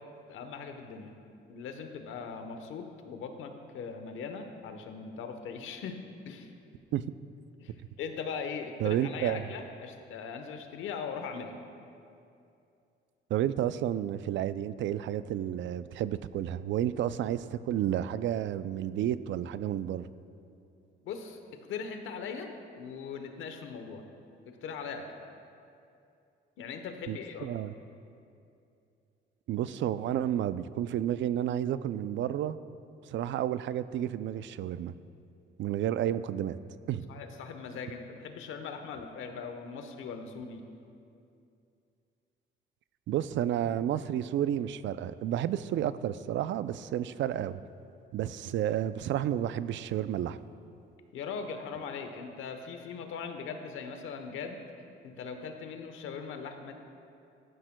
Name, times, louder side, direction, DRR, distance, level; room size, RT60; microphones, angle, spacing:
voice 1, 0.3-1.1 1.5-6.0 6.3-6.5 7.6-11.6 21.0-21.4 21.7-24.0 24.4-25.1 26.6-27.7 37.1-40.6 51.1-54.6 55.0-56.7, left 5 dB, 85° left, 6 dB, 1.0 m, -40 dB
voice 2, 8.8-9.4 13.3-20.1 27.1-27.7 29.5-32.6 33.1-34.9 35.6-36.6 36.9-37.1 43.1-47.6 48.1-50.4, right 11 dB, 70° right, 14 dB, 0.4 m, -31 dB
16.0 x 12.5 x 2.2 m, 2.6 s
cardioid pair, 90°, 20 cm